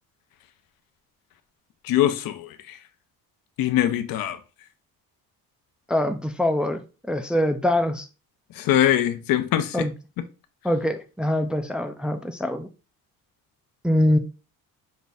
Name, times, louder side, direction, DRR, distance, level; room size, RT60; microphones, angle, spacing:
voice 1, 1.8-2.8 3.6-4.4 8.6-9.8, left 12 dB, 70° left, 0.7 m, -22 dB
voice 2, 5.9-6.8 7.1-8.1 9.7-9.9 10.6-12.7 13.8-14.2, left 1 dB, 5° right, 0.3 m, -23 dB
5.3 x 2.4 x 4.0 m
cardioid pair, 125°, 36 cm